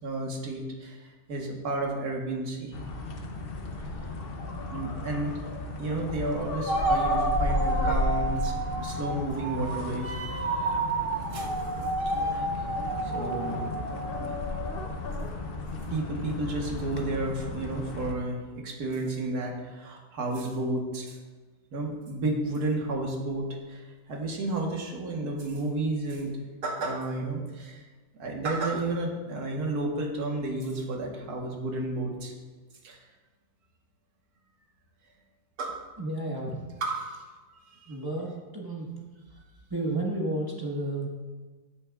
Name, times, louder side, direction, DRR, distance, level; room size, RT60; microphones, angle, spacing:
voice 1, 0.0-2.8 4.7-5.4 5.8-10.1 11.3-11.5 12.3-12.5 13.0-13.6 14.2-14.3 15.9-21.2 21.7-26.4 26.6-27.8 28.2-32.3 32.8-33.0 35.6-35.8 36.8-37.2 37.7-38.0, right 2 dB, 70° right, 0 dB, 1.8 m, -32 dB
sound 1, 2.7-18.1, left 2 dB, 45° left, 0.8 m, -34 dB
sound 2, 6.7-15.0, right 3 dB, 50° right, 0.7 m, -31 dB
voice 2, 36.0-36.6 37.9-39.2 39.7-41.1, right 2 dB, 15° right, -3 dB, 1.3 m, -32 dB
14.5 x 7.1 x 2.4 m, 1.3 s
omnidirectional pair, 1.7 m